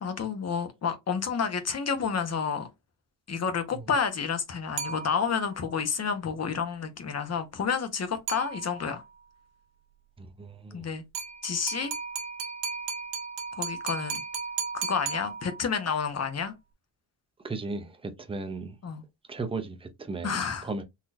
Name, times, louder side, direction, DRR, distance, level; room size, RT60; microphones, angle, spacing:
voice 1, 0.0-2.7 3.3-9.0 10.7-11.0 11.4-11.9 13.5-14.2 14.7-16.5 18.8-19.0 20.2-20.7, left 6 dB, 35° left, 1.0 m, -30 dB
sound 1, 4.8-5.5 8.3-9.0 11.1-15.8, right 6 dB, 60° right, 1.4 m, -35 dB
voice 2, 10.2-10.8 17.4-18.8 19.3-20.8, right 3 dB, 10° right, 0.6 m, -36 dB
4.0 x 2.9 x 2.6 m
cardioid pair, 135°, 48 cm